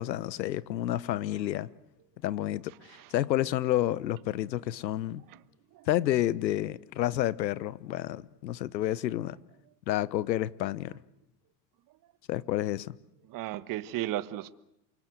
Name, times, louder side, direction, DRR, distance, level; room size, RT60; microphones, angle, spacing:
voice 1, 0.0-1.7 2.2-2.7 3.1-5.2 5.9-9.4 9.9-11.0 12.3-13.0, left 13 dB, 90° left, 1.1 m, -30 dB
voice 2, 13.3-14.5, right 14 dB, 40° right, 1.4 m, -35 dB
28.5 x 24.0 x 8.0 m
hypercardioid pair, 110°, 50 cm